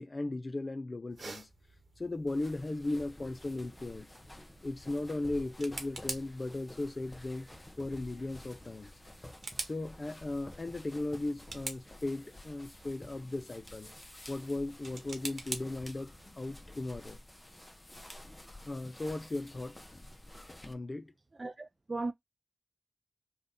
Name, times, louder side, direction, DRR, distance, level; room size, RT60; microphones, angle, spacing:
voice 1, 0.0-1.5 2.0-4.1 4.6-7.5 7.8-8.9 9.6-13.9 14.3-17.2 18.7-19.8 20.6-21.1, left 2 dB, 45° left, 0.4 m, -37 dB
sound 1, 1.1-16.3, right 3 dB, 80° right, 1.0 m, -48 dB
sound 2, 2.3-20.7, left 1 dB, 20° left, 0.8 m, -51 dB
voice 2, 21.4-22.1, right 3 dB, 45° right, 0.4 m, -37 dB
3.6 x 2.2 x 3.7 m
cardioid pair, 45°, 0 cm